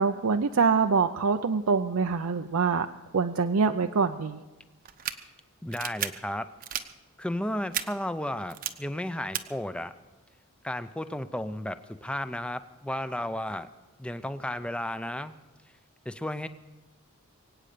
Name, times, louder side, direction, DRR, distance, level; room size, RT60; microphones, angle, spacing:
voice 1, 0.0-2.9 3.1-4.4, right 5 dB, 70° right, 6 dB, 0.5 m, -25 dB
sound 1, 4.9-5.1 5.7-6.1 6.6-6.8 7.7-7.8 8.5-8.7 9.3-9.4, right 10 dB, 40° right, 0.8 m, -31 dB
voice 2, 5.6-6.5 7.2-9.9 10.6-13.7 14.0-15.3 16.1-16.5, left 1 dB, 5° left, 11 dB, 0.5 m, -33 dB
23.0 x 9.0 x 6.7 m, 1.2 s
head